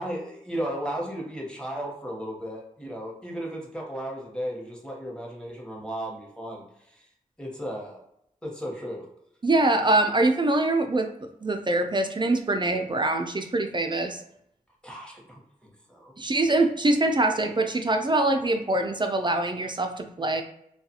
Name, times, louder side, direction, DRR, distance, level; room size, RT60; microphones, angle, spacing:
voice 1, 0.0-6.6 6.9-7.1 7.4-8.0 8.4-9.0 14.8-16.1, equal, 5° left, -1 dB, 1.0 m, -35 dB
voice 2, 9.4-11.1 11.4-14.2 16.2-20.4, right 2 dB, 30° right, 5 dB, 0.4 m, -24 dB
2.4 x 2.3 x 2.7 m, 0.75 s
cardioid pair, 40°, 15 cm